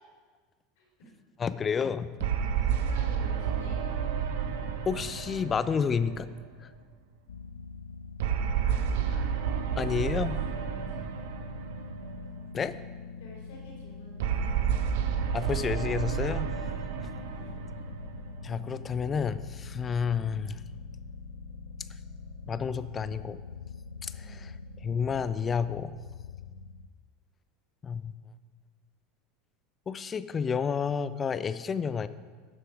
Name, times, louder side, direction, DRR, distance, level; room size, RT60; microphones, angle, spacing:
voice 1, 0.8-1.1 2.3-3.8 8.6-9.2 9.7-10.2 10.5-11.2 13.2-14.9 17.2-17.6 24.2-24.5, equal, 75° left, -2 dB, 3.6 m, -50 dB
voice 2, 1.4-2.1 4.9-6.3 6.6-6.7 9.8-10.4 12.5-12.8 15.3-16.5 17.0-17.1 18.4-20.6 22.5-23.4 24.0-24.6 24.8-26.0 27.8-28.1 29.9-32.1, left 6 dB, 30° left, 14 dB, 0.5 m, -30 dB
sound 1, 2.2-6.8 8.2-12.6 14.2-18.8, right 8 dB, 70° right, 0.8 m, -31 dB
sound 2, 7.3-26.9, left 4 dB, 90° left, 0.4 m, -44 dB
11.5 x 6.7 x 5.0 m, 1.5 s
hypercardioid pair, 85°, 0 cm